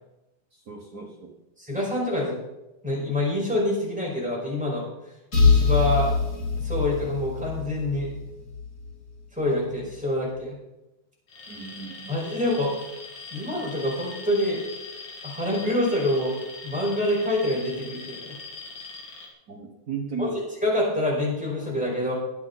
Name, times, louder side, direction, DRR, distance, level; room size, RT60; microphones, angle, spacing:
voice 1, 0.7-1.3 11.5-12.1 19.5-20.4, right 5 dB, 75° right, 0 dB, 0.9 m, -35 dB
voice 2, 1.6-2.4 2.8-4.9 5.5-6.1 6.6-8.1 9.3-10.6 12.1-12.7 13.3-14.6 15.2-16.4 16.6-18.4 20.2-22.1, left 1 dB, ahead, -4 dB, 5.0 m, -26 dB
sound 1, 5.3-9.0, left 4 dB, 30° left, 4.2 m, -23 dB
Alarm, 11.3-19.3, left 3 dB, 60° left, 3.2 m, -41 dB
20.5 x 8.7 x 4.1 m, 0.96 s
omnidirectional pair, 3.7 m